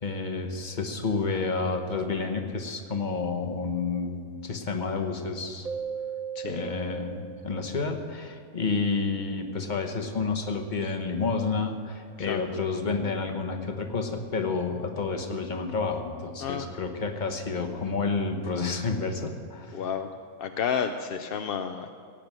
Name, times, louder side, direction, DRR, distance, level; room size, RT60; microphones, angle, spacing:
voice 1, 0.0-5.7 6.4-19.9, left 4 dB, 35° left, 5 dB, 1.1 m, -30 dB
Keyboard (musical), 5.6-8.4, right 7 dB, 75° right, 1.3 m, -37 dB
voice 2, 6.4-6.7 12.3-12.4 16.4-16.7 19.7-20.1 20.4-22.0, left 7 dB, 60° left, 7 dB, 0.6 m, -31 dB
17.0 x 8.8 x 6.1 m, 2.2 s
omnidirectional pair, 1.5 m